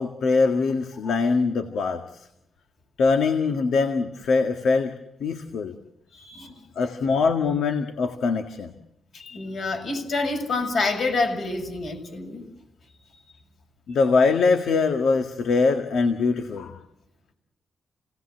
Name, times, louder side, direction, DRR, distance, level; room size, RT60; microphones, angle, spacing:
voice 1, 0.0-2.3 3.0-4.9 5.2-5.7 6.7-8.7 13.9-16.8, left 4 dB, 75° left, 7 dB, 1.8 m, -22 dB
voice 2, 6.1-6.5 9.1-12.4, left 3 dB, 55° left, 5 dB, 6.8 m, -27 dB
29.5 x 18.5 x 7.8 m, 0.86 s
wide cardioid pair, 180°, 0 cm